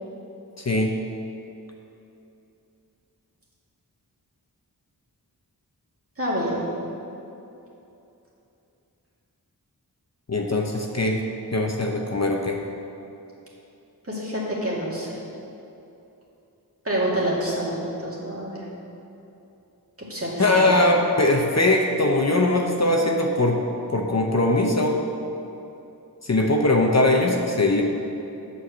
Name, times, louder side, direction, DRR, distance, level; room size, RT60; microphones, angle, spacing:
voice 1, 0.6-0.9 10.3-11.2 11.5-12.6 20.4-23.6 23.9-25.0 26.2-27.8, left 2 dB, 45° left, 1 dB, 0.8 m, -21 dB
voice 2, 6.2-6.6 14.0-15.2 16.8-18.6 20.1-20.8, right 1 dB, 35° right, -5 dB, 2.2 m, -27 dB
8.5 x 4.8 x 7.2 m, 2.8 s
wide cardioid pair, 60°, 39 cm